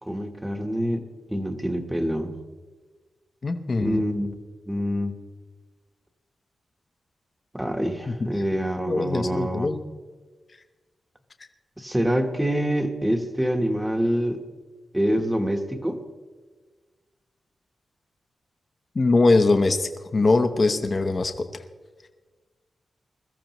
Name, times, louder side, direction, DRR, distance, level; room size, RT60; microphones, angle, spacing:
voice 1, 0.0-2.3 3.8-4.4 4.7-5.1 7.5-9.7 11.8-14.4 14.9-16.0, equal, 10° right, 5 dB, 1.2 m, -26 dB
voice 2, 3.4-4.0 8.1-8.2 8.9-9.8 18.9-21.3, left 3 dB, 35° left, 6 dB, 0.8 m, -21 dB
21.0 x 14.0 x 3.0 m, 1.3 s
wide cardioid pair, 140°, 0 cm